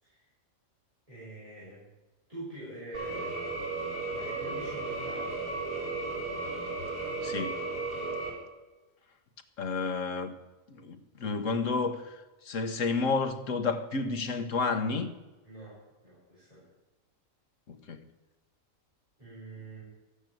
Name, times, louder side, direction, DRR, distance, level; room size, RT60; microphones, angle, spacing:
voice 1, 1.1-1.8 2.3-5.5 15.4-16.7 19.2-19.8, right 1 dB, 25° right, 6.6 m, -46 dB
sound 1, 2.9-8.3, right 3 dB, 80° right, 5.8 m, -34 dB
voice 2, 7.2-7.6 9.6-10.4 10.7-15.1 17.7-18.0, left 4 dB, 65° left, 1.6 m, -31 dB
14.0 x 8.9 x 9.0 m
omnidirectional pair, 1.4 m